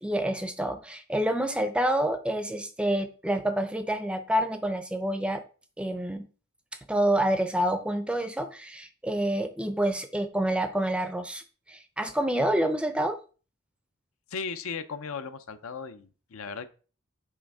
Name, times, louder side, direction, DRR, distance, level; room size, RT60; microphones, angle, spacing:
voice 1, 0.0-5.4 5.8-6.2 6.9-11.4 11.7-13.2, right 1 dB, 5° right, 9 dB, 0.5 m, -28 dB
voice 2, 14.3-16.7, left 5 dB, 70° left, 11 dB, 0.6 m, -36 dB
6.4 x 3.4 x 4.7 m, 0.37 s
head